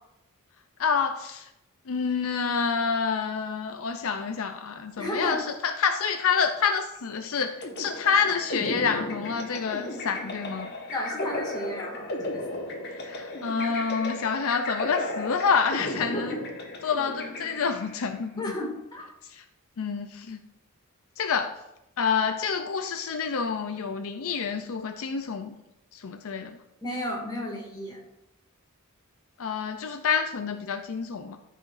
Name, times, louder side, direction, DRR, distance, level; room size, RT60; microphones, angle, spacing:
voice 1, 0.8-1.4 1.9-10.7 13.0-16.4 16.8-18.6 19.3-19.4 19.8-20.4 21.2-21.5 22.0-25.5 25.9-26.6 29.4-31.4, left 6 dB, 65° left, 7 dB, 0.5 m, -28 dB
voice 2, 5.0-5.4 10.9-12.6 16.1-16.3 18.4-19.1 26.8-28.0, left 1 dB, 20° left, -3 dB, 2.2 m, -33 dB
sound 1, 7.6-18.0, left 1 dB, 50° left, 1.5 m, -35 dB
13.5 x 5.0 x 2.6 m, 0.87 s
head